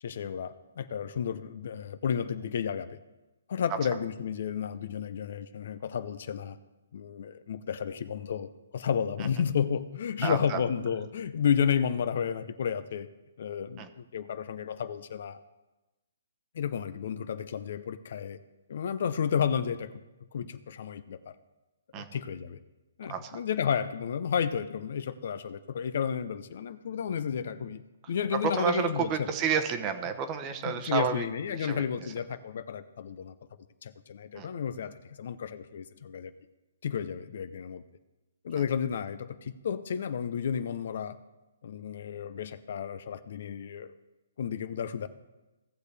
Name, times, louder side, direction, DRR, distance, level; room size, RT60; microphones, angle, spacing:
voice 1, 0.0-3.0 3.5-6.6 6.9-13.1 13.4-15.4 16.5-18.4 18.7-20.0 20.3-21.3 21.9-22.6 23.0-27.8 28.1-29.3 30.6-33.3 33.8-36.3 36.8-37.8 38.4-41.2 41.6-43.9 44.4-45.1, left 7 dB, 55° left, 13 dB, 0.6 m, -32 dB
voice 2, 10.2-10.6 13.8-13.9 21.9-22.2 23.1-23.4 28.3-31.8 34.4-34.5, right 7 dB, 25° right, 8 dB, 1.0 m, -31 dB
17.0 x 6.7 x 3.4 m, 1.1 s
hypercardioid pair, 155°, 0 cm